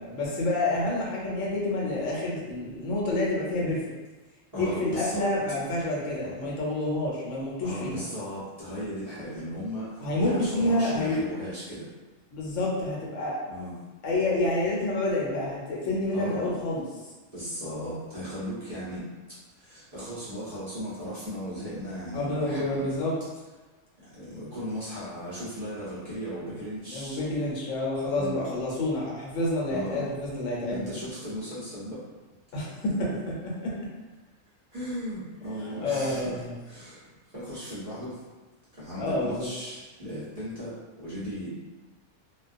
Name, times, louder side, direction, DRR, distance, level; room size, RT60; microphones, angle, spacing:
voice 1, 0.0-3.8 4.6-8.0 10.0-11.2 12.3-13.4 14.0-16.8 22.1-23.1 26.9-30.9 32.5-33.7 35.6-36.5 39.0-39.5, left 1 dB, 75° left, -4 dB, 1.0 m, -28 dB
voice 2, 4.5-5.2 6.2-6.4 7.6-11.9 13.5-13.7 16.1-16.6 17.3-23.0 24.0-27.2 28.2-28.4 29.7-30.1 30.7-32.0 34.7-38.2 38.7-41.5, equal, 35° right, -11 dB, 0.7 m, -37 dB
2.3 x 2.2 x 2.5 m, 1.2 s
omnidirectional pair, 1.3 m